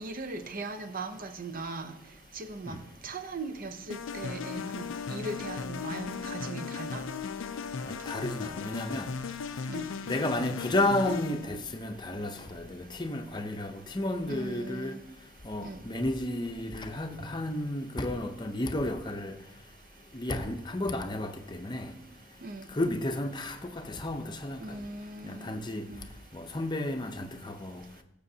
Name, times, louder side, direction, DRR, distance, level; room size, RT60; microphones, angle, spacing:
voice 1, 0.0-1.9 2.3-2.8 3.0-7.0 9.7-9.9 14.3-15.0 15.6-15.8 22.4-22.7 24.6-25.6 25.9-26.0, right 3 dB, 45° right, 0.7 m, -39 dB
sound 1, 3.9-11.5, left 5 dB, 80° left, 0.5 m, -37 dB
voice 2, 7.8-9.1 10.1-14.9 15.4-19.3 20.1-21.9 22.7-24.6 25.2-25.9 26.3-27.8, left 1 dB, 25° left, 0.7 m, -32 dB
14.5 x 6.9 x 2.8 m
head